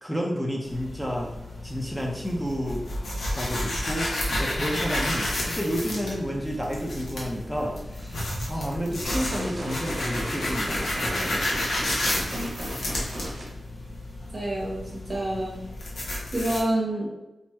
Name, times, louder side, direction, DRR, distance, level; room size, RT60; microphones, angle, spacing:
voice 1, 0.0-1.3 1.6-2.8 3.3-11.5, equal, 5° left, -2 dB, 0.5 m, -31 dB
sound 1, 0.6-16.6, left 1 dB, 85° left, 0.7 m, -31 dB
sound 2, 9.0-13.4, equal, 80° right, 0.9 m, -36 dB
voice 2, 14.3-15.6 16.3-17.1, right 1 dB, 40° right, -3 dB, 0.7 m, -28 dB
2.8 x 2.0 x 3.3 m, 0.99 s
wide cardioid pair, 100°, 0 cm